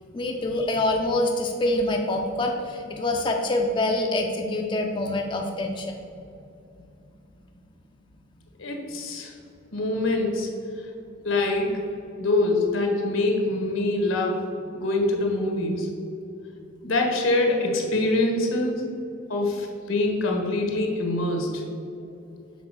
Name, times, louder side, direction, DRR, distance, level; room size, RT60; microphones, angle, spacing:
voice 1, 0.1-6.0, left 1 dB, 25° left, 2 dB, 0.4 m, -25 dB
voice 2, 8.6-9.3 9.7-10.5 11.2-11.8 12.2-14.4 14.7-15.9 16.8-18.7 19.3-21.6, left 2 dB, 80° left, 2 dB, 1.3 m, -24 dB
6.0 x 4.2 x 6.3 m, 2.6 s
head